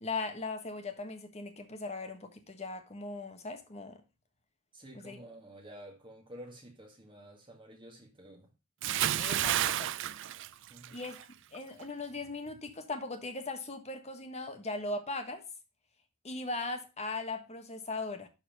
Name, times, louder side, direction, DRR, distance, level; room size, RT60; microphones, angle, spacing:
voice 1, 0.0-4.0 4.9-5.2 9.2-9.9 10.9-11.2 11.5-15.4 16.2-18.3, left 3 dB, 30° left, 1.4 m, -39 dB
voice 2, 4.7-8.5 10.7-11.0, right 1 dB, 25° right, 1.8 m, -50 dB
Bathtub (filling or washing) / Splash splatter, 8.8-11.2 11.5-11.8, right 12 dB, 60° right, 0.4 m, -31 dB
11.5 x 4.3 x 5.2 m
head